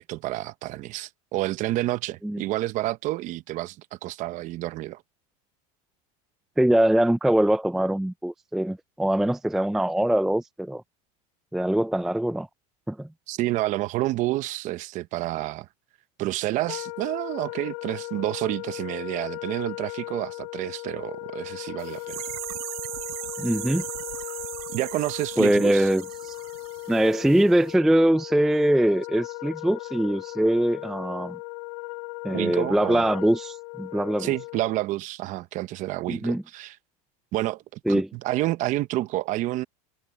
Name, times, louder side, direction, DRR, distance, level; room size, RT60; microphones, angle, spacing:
voice 1, 0.0-5.0 13.3-15.7 16.2-22.2 24.7-25.9 32.3-33.1 34.2-36.8 37.3-39.6, right 16 dB, 40° right, 0.9 m, -29 dB
voice 2, 6.6-10.8 11.5-12.5 12.9-13.1 23.4-23.8 25.4-26.4 26.9-31.4 32.2-34.3 36.1-36.4 37.9-38.1, right 1 dB, ahead, 0.3 m, -23 dB
Wind instrument woodwind instrument, 16.7-34.8, left 35 dB, 65° left, 3.7 m, -37 dB
sound 1, 21.8-27.4 27.7-27.8, right 23 dB, 70° right, 7.8 m, -38 dB
supercardioid pair, 145°, 19 cm